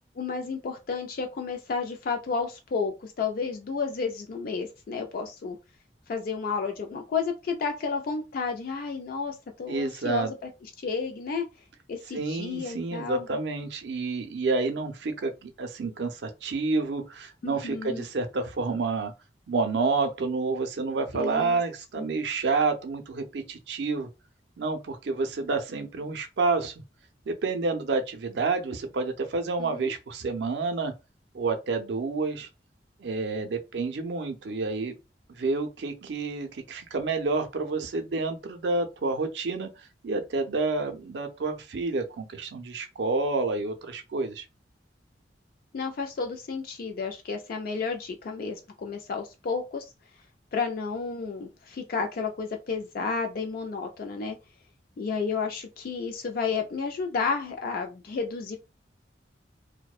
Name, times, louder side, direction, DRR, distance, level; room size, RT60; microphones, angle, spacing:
voice 1, 0.2-5.6 6.1-11.4 11.9-13.3 17.4-18.1 21.1-21.6 22.0-22.1 29.6-29.9 45.7-49.9 50.5-54.4 55.0-58.6, left 5 dB, 55° left, 0.3 m, -32 dB
voice 2, 9.7-10.3 12.1-19.1 19.5-24.1 24.6-26.7 27.3-30.9 31.3-32.5 33.0-34.9 35.4-39.7 40.0-44.5, right 3 dB, 70° right, 0.5 m, -29 dB
2.5 x 2.1 x 2.3 m
head